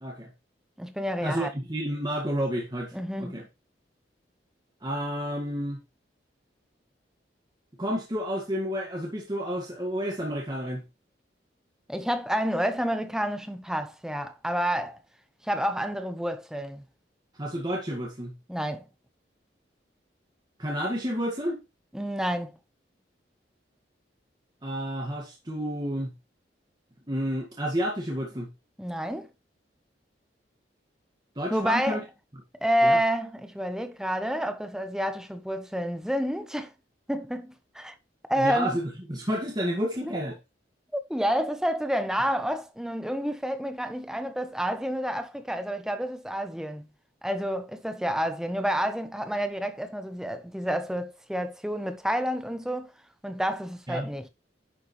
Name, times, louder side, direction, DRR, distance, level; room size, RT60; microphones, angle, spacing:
voice 1, 0.0-0.3 1.2-3.4 4.8-5.8 7.8-10.8 17.3-18.4 20.6-21.6 24.6-26.1 27.1-28.5 31.4-32.0 32.8-33.0 38.4-38.8 39.1-40.4 53.9-54.1, equal, 25° right, 1.9 m, -30 dB
voice 2, 0.8-1.5 2.9-3.4 11.9-15.0 15.4-16.8 18.5-18.9 21.9-22.5 28.8-29.3 31.5-32.0 32.6-36.7 37.1-37.9 38.3-38.8 40.9-46.9 47.2-52.9 53.2-54.3, equal, 5° right, 1.0 m, -29 dB
11.0 x 7.0 x 3.2 m
head